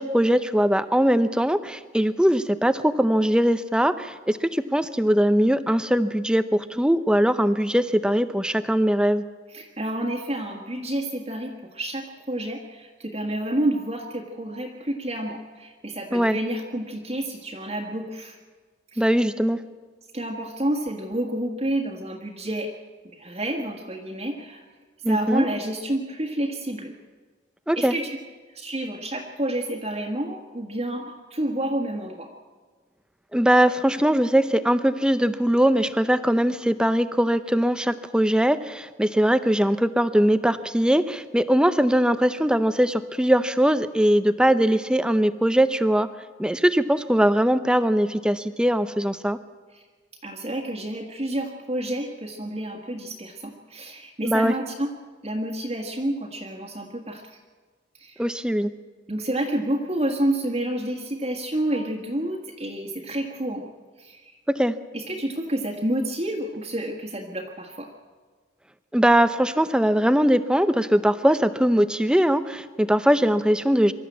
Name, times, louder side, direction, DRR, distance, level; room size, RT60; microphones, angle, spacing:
voice 1, 0.0-9.2 16.1-16.4 19.0-19.6 25.0-25.5 27.7-27.9 33.3-46.1 46.4-49.4 54.2-54.5 58.2-58.7 64.5-64.7 68.9-73.9, equal, 5° right, 12 dB, 0.6 m, -21 dB
voice 2, 9.5-18.4 18.9-19.1 20.1-22.7 23.1-24.6 25.1-26.9 27.7-28.1 28.5-32.3 49.7-49.8 50.2-54.9 55.2-57.4 58.0-58.2 59.1-63.6 64.0-64.4 64.9-67.9, right 1 dB, 35° right, -1 dB, 1.6 m, -29 dB
24.0 x 13.0 x 8.4 m, 1.4 s
head